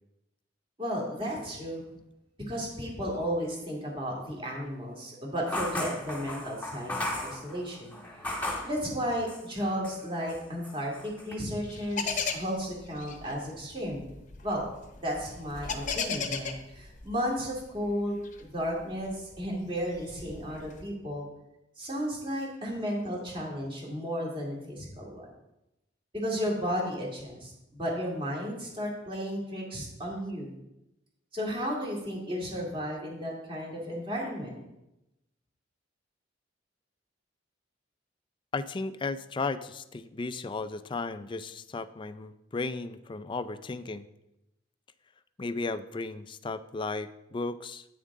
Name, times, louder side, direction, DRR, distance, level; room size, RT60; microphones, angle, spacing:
voice 1, 0.8-1.8 2.5-6.9 7.2-8.0 8.6-14.0 14.4-14.7 15.0-21.3 21.8-25.3 26.1-30.5 31.3-34.6, equal, 30° right, -2 dB, 2.3 m, -33 dB
sound 1, 5.5-8.8 9.3-10.0 10.3-11.3, left 1 dB, 10° left, 1.5 m, -35 dB
sound 2, 11.6-17.7 18.2-20.8, left 5 dB, 40° left, 0.8 m, -36 dB
voice 2, 38.5-44.1 45.4-47.8, left 3 dB, 25° left, 12 dB, 0.4 m, -35 dB
9.4 x 7.3 x 3.6 m, 0.90 s
head